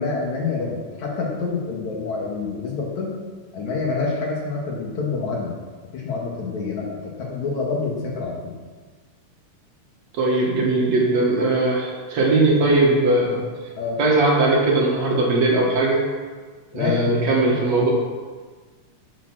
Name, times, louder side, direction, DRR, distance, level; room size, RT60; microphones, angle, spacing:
voice 1, 0.0-3.2 3.5-5.6 5.9-8.6 12.2-12.3 13.8-14.0 16.7-17.0 17.3-17.6, left 4 dB, 60° left, -2 dB, 2.8 m, -27 dB
voice 2, 10.1-13.4 14.0-16.0 16.7-17.9, right 2 dB, 55° right, -3 dB, 2.7 m, -19 dB
11.0 x 7.1 x 6.2 m, 1.5 s
omnidirectional pair, 3.9 m